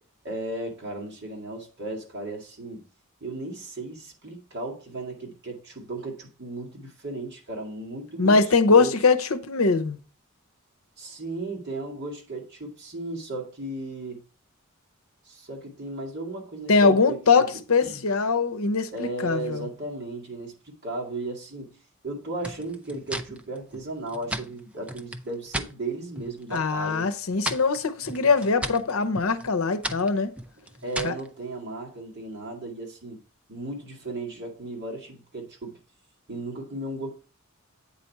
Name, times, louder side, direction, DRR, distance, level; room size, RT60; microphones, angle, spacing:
voice 1, 0.2-2.9 3.2-8.4 8.7-9.0 11.0-14.2 15.3-17.5 17.8-18.0 18.9-20.5 20.8-21.8 22.0-27.1 30.8-33.2 33.5-35.8 36.3-37.1, right 2 dB, 50° right, 2.1 m, -35 dB
voice 2, 8.2-10.0 16.7-19.7 26.5-30.3 31.0-31.1, left 4 dB, 70° left, 0.7 m, -22 dB
sound 1, 22.4-25.7 26.1-26.7 27.0-31.3, right 1 dB, 5° right, 0.4 m, -36 dB
8.5 x 4.2 x 4.7 m
head